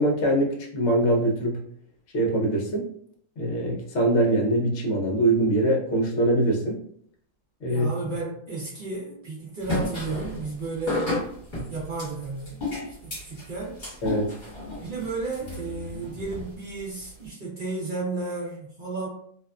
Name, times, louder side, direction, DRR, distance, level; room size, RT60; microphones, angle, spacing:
voice 1, 0.0-1.6 2.1-2.9 3.4-6.8 7.6-7.9 14.0-14.3, right 1 dB, 60° left, -1 dB, 0.8 m, -23 dB
voice 2, 7.7-11.1 11.7-13.8 14.8-19.1, right 3 dB, 75° right, -5 dB, 0.4 m, -33 dB
Getting a tattoo, 9.6-17.3, left 2 dB, 30° left, 1.3 m, -33 dB
2.7 x 2.3 x 2.2 m, 0.62 s
omnidirectional pair, 1.7 m